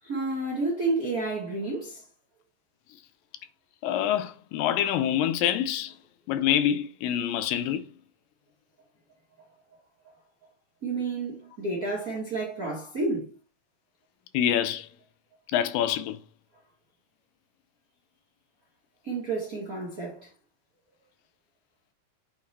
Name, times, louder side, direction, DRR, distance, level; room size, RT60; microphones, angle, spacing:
voice 1, 0.0-2.0 10.8-13.3 19.0-20.3, right 3 dB, 75° right, 0.8 m, -30 dB
voice 2, 3.8-5.9 6.3-7.9 14.3-14.9 15.5-16.2, left 10 dB, 80° left, 2.2 m, -26 dB
8.5 x 3.1 x 4.1 m
omnidirectional pair, 4.1 m